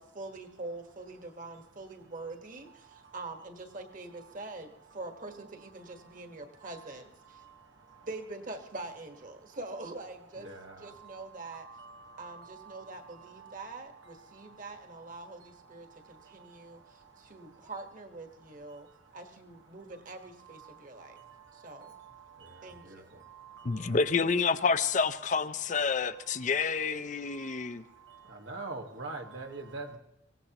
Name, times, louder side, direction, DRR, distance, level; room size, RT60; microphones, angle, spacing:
voice 1, 0.0-7.4 8.0-10.5 10.8-11.7 12.2-18.9 19.1-21.2 21.5-22.0 22.6-23.2, right 2 dB, 45° right, 1.5 m, -44 dB
voice 2, 10.4-10.9 11.5-12.9 13.4-13.7 21.8-22.0 22.4-23.0 23.4-24.0 28.3-30.0, right 3 dB, 80° right, 1.7 m, -44 dB
voice 3, 23.6-27.8, left 5 dB, 40° left, 0.5 m, -28 dB
24.0 x 17.0 x 3.0 m
head